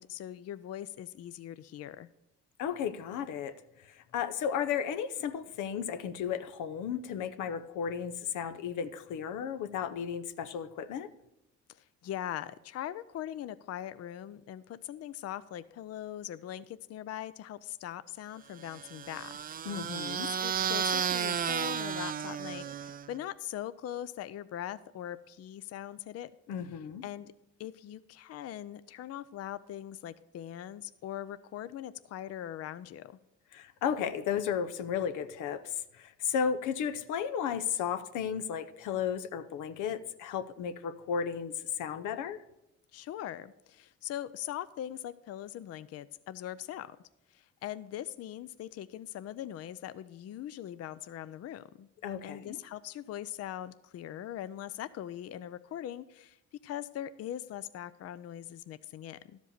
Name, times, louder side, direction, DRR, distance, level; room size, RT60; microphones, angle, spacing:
voice 1, 0.0-2.1 11.7-19.3 20.3-26.3 27.0-27.3 27.6-33.2 42.9-47.0 47.3-51.9 52.2-59.4, left 11 dB, 55° left, 0.5 m, -41 dB
voice 2, 2.6-11.1 19.7-20.3 26.5-27.0 33.5-42.4 52.0-52.6, left 8 dB, 85° left, 0.7 m, -34 dB
sound 1, 18.6-23.2, right 8 dB, 30° right, 0.4 m, -33 dB
12.5 x 5.1 x 6.6 m
cardioid pair, 90°, 30 cm